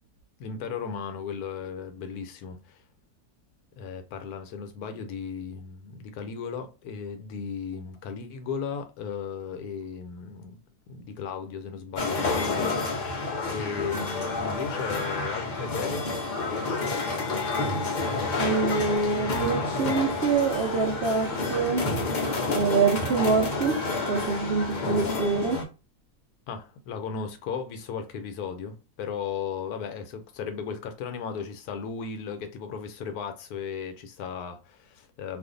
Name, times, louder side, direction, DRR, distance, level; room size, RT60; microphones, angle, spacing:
voice 1, 0.4-2.8 3.8-10.6 10.9-13.2 13.5-16.1 16.4-16.9 26.5-35.4, left 6 dB, 75° left, 1.1 m, -36 dB
sound 1, 12.0-25.6, left 3 dB, 60° left, 0.5 m, -29 dB
voice 2, 18.4-21.8 22.5-23.8 24.1-25.6, right 4 dB, 60° right, 0.6 m, -25 dB
2.5 x 2.5 x 3.7 m
omnidirectional pair, 1.7 m